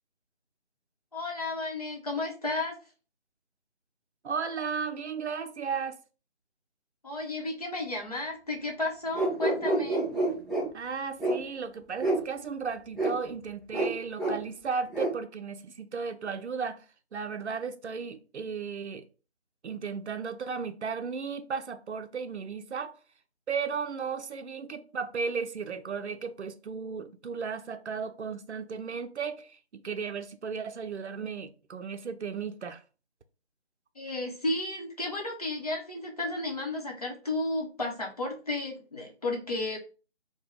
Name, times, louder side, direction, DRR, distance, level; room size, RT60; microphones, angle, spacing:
voice 1, 1.1-2.8 7.0-10.0 33.9-39.8, left 2 dB, 35° left, 0.8 m, -33 dB
voice 2, 4.2-6.0 10.7-16.8 17.1-19.0 19.6-22.9 23.5-32.8, right 5 dB, 75° right, 0.5 m, -35 dB
sound 1, 9.1-10.7 11.2-11.4 12.0-12.2 13.0-13.1 13.7-13.9 14.2-14.4 14.9-15.1, right 2 dB, ahead, 0.4 m, -27 dB
3.5 x 2.2 x 3.4 m
figure-of-eight pair, 160°, 34 cm